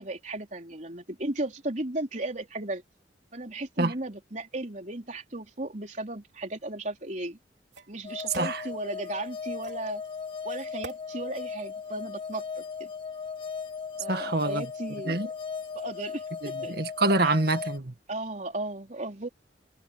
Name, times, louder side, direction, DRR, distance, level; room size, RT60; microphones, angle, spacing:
voice 1, 0.0-2.8 3.3-7.4 7.9-10.0 10.4-12.9 14.0-15.3 15.7-16.7 17.2-17.3 18.1-19.3, right 2 dB, 45° right, 4.1 m, -35 dB
sound 1, 7.0-7.1 7.7-8.6 9.6-9.9 10.8-11.0, right 3 dB, 80° right, 3.7 m, -46 dB
sound 2, 8.0-17.8, left 6 dB, 30° left, 2.1 m, -37 dB
voice 2, 14.1-14.6 15.1-15.3 16.4-17.9, right 2 dB, 60° right, 1.9 m, -26 dB
head